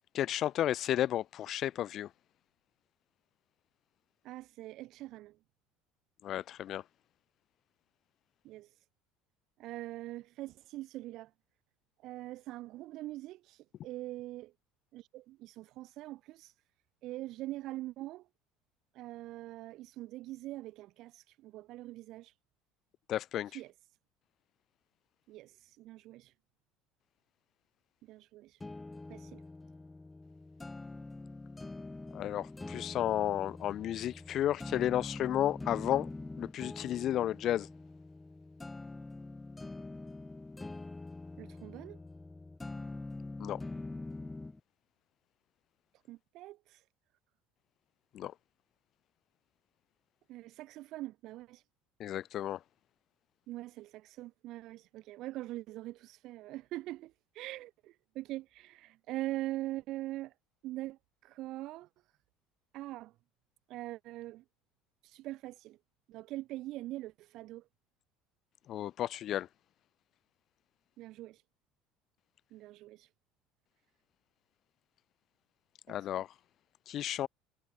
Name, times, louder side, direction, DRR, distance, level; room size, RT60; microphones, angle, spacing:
voice 1, 0.1-2.1 6.2-6.8 23.1-23.6 32.1-36.1 36.4-37.7 43.4-43.6 48.1-48.3 52.0-52.6 68.7-69.5 75.9-76.3 76.9-77.3, left 12 dB, 45° left, 1.2 m, -33 dB
voice 2, 4.2-5.4 8.4-8.7 9.6-11.3 12.0-14.5 14.9-16.5 17.0-18.3 18.9-22.3 23.5-23.7 25.3-26.3 28.0-28.6 29.1-29.4 41.4-42.0 46.1-46.8 50.3-51.6 53.5-60.3 60.6-61.9 62.7-63.1 63.7-64.4 65.0-65.8 66.1-67.6 71.0-71.4 72.5-73.1 75.9-76.0, right 16 dB, 55° right, 4.2 m, -43 dB
sound 1, 28.6-44.6, left 2 dB, 10° left, 1.9 m, -44 dB
cardioid pair, 135°, 0 cm